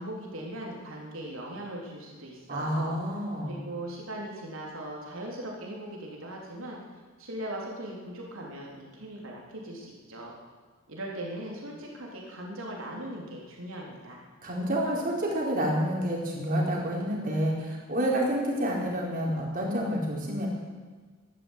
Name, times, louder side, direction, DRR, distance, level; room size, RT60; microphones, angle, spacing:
voice 1, 0.0-2.9 3.4-6.8 7.2-10.3 10.9-14.2, right 1 dB, 85° right, -2 dB, 3.7 m, -39 dB
voice 2, 2.5-3.6 14.4-20.5, equal, 45° right, -3 dB, 4.4 m, -29 dB
13.0 x 12.5 x 8.3 m, 1.4 s
head